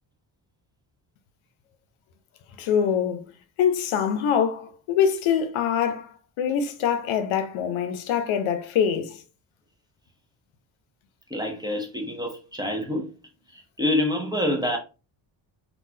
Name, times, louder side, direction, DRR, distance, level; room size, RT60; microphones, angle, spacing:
voice 1, 2.6-3.3 3.6-9.2, left 8 dB, 90° left, 0.7 m, -24 dB
voice 2, 11.3-13.1 13.5-14.8, left 1 dB, 10° right, 0.6 m, -27 dB
3.9 x 2.4 x 2.6 m
cardioid pair, 135°, 47 cm